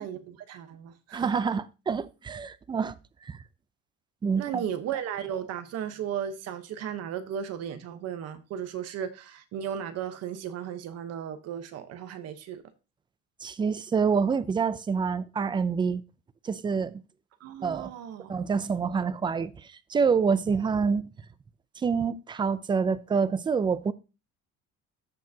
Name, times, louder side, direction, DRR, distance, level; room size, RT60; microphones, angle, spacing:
voice 1, 0.0-1.4 4.3-12.6 17.4-18.3, right 9 dB, 55° right, 1.0 m, -35 dB
voice 2, 1.1-3.0 3.3-3.4 4.2-4.6 13.4-16.0 16.4-17.0 17.6-17.9 18.3-19.5 19.9-21.1 21.8-23.9, right 5 dB, 15° right, 0.4 m, -27 dB
14.0 x 4.7 x 2.8 m
cardioid pair, 145°, 30 cm